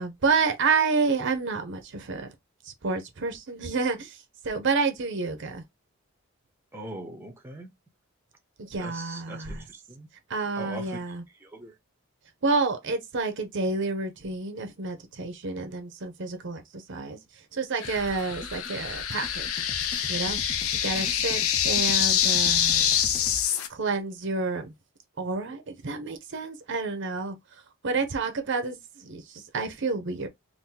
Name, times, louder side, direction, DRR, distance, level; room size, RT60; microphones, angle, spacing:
voice 1, 0.0-2.3 2.8-4.2 4.4-5.6 8.7-9.6 10.3-11.2 12.4-17.2 17.5-19.5 20.1-20.4 20.8-22.9 23.7-24.7 25.2-27.4 27.8-29.2 29.5-30.3, right 4 dB, 55° right, 0.6 m, -29 dB
voice 2, 6.7-7.7 8.7-10.1 10.5-11.7 20.9-21.1, right 2 dB, 10° right, 0.6 m, -41 dB
sound 1, 17.8-23.7, left 9 dB, 75° left, 0.6 m, -26 dB
sound 2, 17.8-23.5, left 2 dB, 35° left, 0.6 m, -41 dB
2.8 x 2.5 x 3.7 m
head